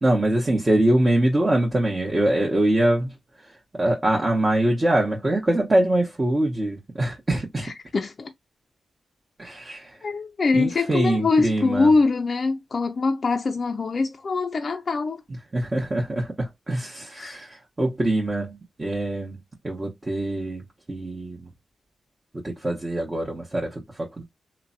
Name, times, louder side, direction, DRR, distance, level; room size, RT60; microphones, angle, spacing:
voice 1, 0.0-3.1 3.8-7.7 9.4-9.9 10.5-11.9 15.5-19.4 19.6-20.6 20.9-21.4 22.4-24.2, right 1 dB, 30° right, 0.9 m, -23 dB
voice 2, 7.6-8.3 9.4-9.5 10.0-15.2 17.2-17.4, left 3 dB, 50° left, 0.3 m, -23 dB
3.1 x 2.1 x 2.6 m
supercardioid pair, 45°, 0 cm